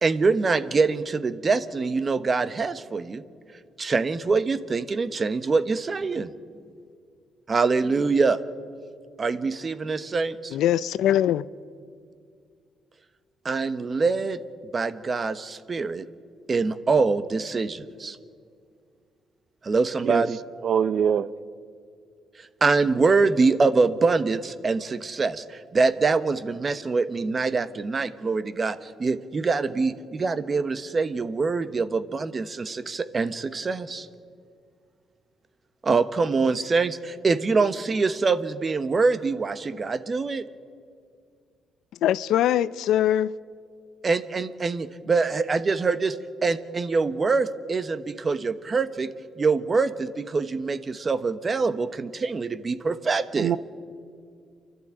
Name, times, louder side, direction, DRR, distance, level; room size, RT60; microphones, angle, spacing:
voice 1, 0.0-3.2 3.8-6.3 7.5-8.4 9.2-10.6 13.4-14.4 14.7-16.1 16.5-18.2 19.6-20.4 22.6-34.1 35.8-40.4 44.0-46.2 46.4-49.1 49.4-53.5, right 4 dB, 35° right, 1.1 m, -24 dB
voice 2, 10.5-11.5 42.0-43.4, left 11 dB, 80° left, 0.5 m, -22 dB
voice 3, 20.6-21.3 53.4-53.6, right 8 dB, 60° right, 0.7 m, -23 dB
29.0 x 12.5 x 8.9 m
cardioid pair, 90°, 0 cm